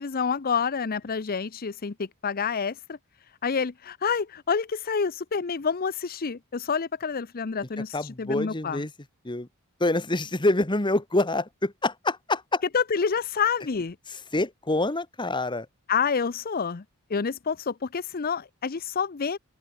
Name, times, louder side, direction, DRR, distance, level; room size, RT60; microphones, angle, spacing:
voice 1, 0.0-3.0 3.4-8.8 12.7-14.0 15.9-16.8 17.1-19.4, left 6 dB, 40° left, 0.6 m, -28 dB
voice 2, 7.9-8.9 9.2-9.5 9.8-12.6 14.1-15.7, left 2 dB, 20° left, 1.5 m, -26 dB
head